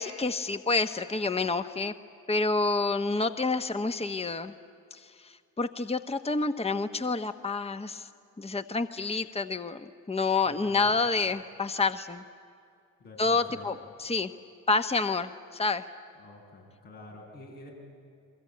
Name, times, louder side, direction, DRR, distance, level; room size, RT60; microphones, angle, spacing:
voice 1, 0.0-1.9 2.3-4.5 4.9-8.1 8.4-12.2 13.2-14.3 14.7-15.9, left 3 dB, 15° left, 9 dB, 1.1 m, -28 dB
voice 2, 10.4-10.9 13.0-13.7 16.2-17.7, left 2 dB, 85° left, -4 dB, 7.5 m, -48 dB
29.0 x 22.5 x 8.6 m, 2.4 s
hypercardioid pair, 45°, 36 cm